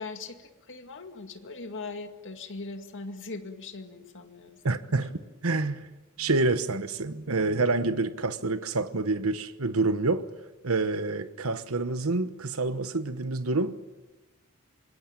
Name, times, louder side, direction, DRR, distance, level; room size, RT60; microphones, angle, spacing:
voice 1, 0.0-5.1, left 3 dB, 60° left, 2.2 m, -40 dB
voice 2, 4.6-5.9 6.2-10.2 10.6-13.9, right 3 dB, 70° right, 1.2 m, -27 dB
26.0 x 21.0 x 9.0 m
head